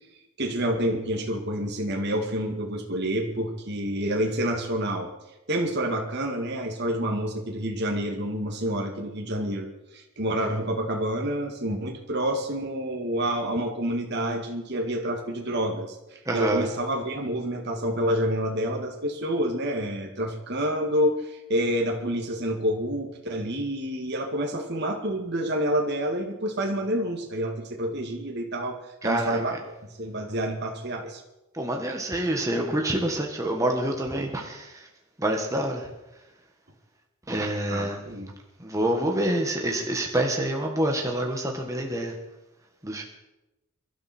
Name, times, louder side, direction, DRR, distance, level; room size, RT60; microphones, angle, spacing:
voice 1, 0.4-5.1 5.5-9.7 9.9-31.2 37.7-38.3, equal, 50° right, 2 dB, 2.1 m, -28 dB
voice 2, 16.3-16.6 29.0-29.4 31.6-34.6 35.2-35.8 37.3-38.0 38.6-42.1 42.8-43.0, right 1 dB, 15° right, 1 dB, 1.5 m, -27 dB
23.0 x 12.5 x 4.4 m, 0.98 s
head